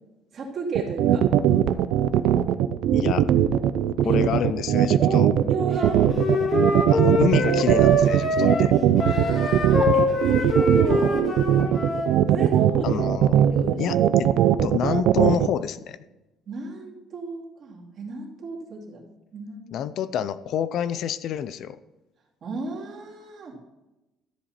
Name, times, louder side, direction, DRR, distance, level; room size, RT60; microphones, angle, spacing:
voice 1, 0.3-1.2 3.0-3.1 4.0-4.2 5.0-5.2 5.5-6.0 9.0-11.3 12.3-12.9 13.5-14.0 16.5-19.0 19.3-19.8 22.4-23.6, right 4 dB, 40° right, -1 dB, 2.7 m, -33 dB
sound 1, 0.8-15.5, right 11 dB, 70° right, 0.6 m, -19 dB
voice 2, 2.9-3.2 4.0-5.3 6.9-8.7 12.8-13.4 13.8-14.3 14.6-16.0 19.7-21.8, left 9 dB, 55° left, 14 dB, 0.5 m, -28 dB
Wind instrument woodwind instrument, 5.8-12.1, left 1 dB, 40° left, 2.2 m, -24 dB
13.5 x 7.8 x 4.3 m, 1.0 s
cardioid pair, 150°, 0 cm